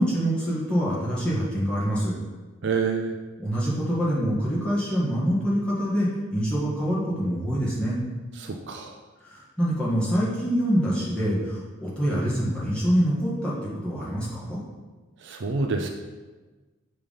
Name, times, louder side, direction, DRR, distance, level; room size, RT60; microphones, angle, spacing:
voice 1, 0.0-2.1 3.4-8.0 9.2-13.5 13.8-14.6, equal, 5° left, -8 dB, 1.9 m, -25 dB
voice 2, 2.6-3.2 8.4-8.9 15.2-15.9, right 4 dB, 55° right, 3 dB, 0.5 m, -27 dB
6.6 x 3.4 x 5.5 m, 1.3 s
head